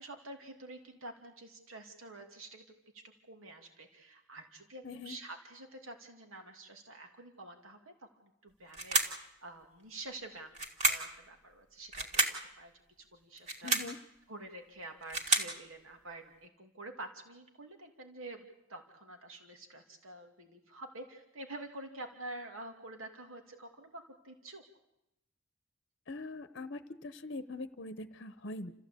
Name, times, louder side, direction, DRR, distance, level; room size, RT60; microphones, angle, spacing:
voice 1, 0.0-2.6 3.3-12.2 12.6-12.7 13.0-14.0 14.3-24.6, right 2 dB, 80° right, 4 dB, 2.8 m, -48 dB
voice 2, 4.8-5.2 13.6-14.0 26.1-28.7, left 2 dB, 50° left, 11 dB, 0.9 m, -42 dB
sound 1, 8.7-9.2 10.5-11.1 11.9-12.4 13.4-13.9 14.8-15.6, right 2 dB, 35° right, 2.5 m, -30 dB
29.0 x 15.0 x 8.5 m, 0.88 s
head